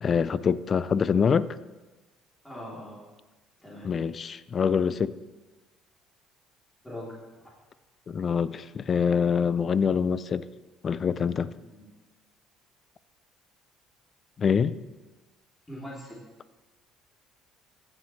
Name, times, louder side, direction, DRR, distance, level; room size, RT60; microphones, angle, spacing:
voice 1, 0.0-1.5 3.8-5.1 8.1-10.5 10.8-11.5 14.4-14.8, left 6 dB, 40° left, 17 dB, 0.4 m, -25 dB
voice 2, 2.4-3.0 3.6-3.9 6.8-7.5 11.4-11.9 15.7-16.2, left 1 dB, 10° left, -6 dB, 3.1 m, -42 dB
15.0 x 7.4 x 3.2 m, 1.2 s
supercardioid pair, 80°, 0 cm